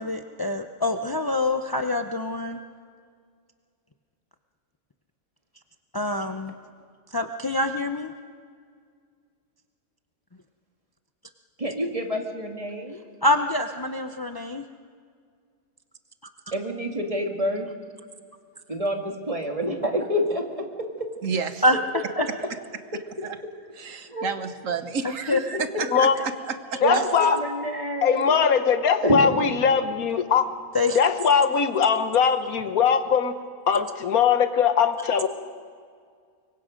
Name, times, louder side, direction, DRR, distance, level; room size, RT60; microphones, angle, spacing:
voice 1, 0.0-2.6 5.9-6.5 7.1-8.1 13.2-14.6 21.6-21.8 22.2-22.3 25.3-25.4 30.7-31.0 33.7-33.8, left 2 dB, 35° left, 0.3 m, -25 dB
voice 2, 11.6-13.0 16.5-17.7 18.7-21.1 24.1-24.3 26.1-26.2 26.8-28.4 29.0-29.3, equal, 25° right, 2.1 m, -27 dB
voice 3, 23.8-26.8, right 5 dB, 65° right, 1.3 m, -31 dB
voice 4, 26.8-27.4 28.0-30.4 31.0-33.4 33.7-35.3, left 6 dB, 75° left, 1.5 m, -21 dB
25.0 x 23.0 x 5.2 m
omnidirectional pair, 1.5 m